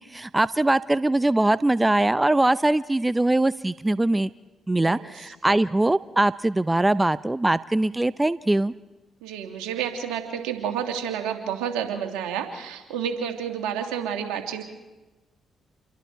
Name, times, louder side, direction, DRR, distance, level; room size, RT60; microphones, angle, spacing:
voice 1, 0.0-4.3 4.7-8.7, right 2 dB, 15° right, 16 dB, 0.6 m, -22 dB
voice 2, 4.8-5.1 9.2-14.6, right 8 dB, 80° right, 4 dB, 2.4 m, -30 dB
28.5 x 23.0 x 4.7 m, 1.1 s
hypercardioid pair, 45°, 0 cm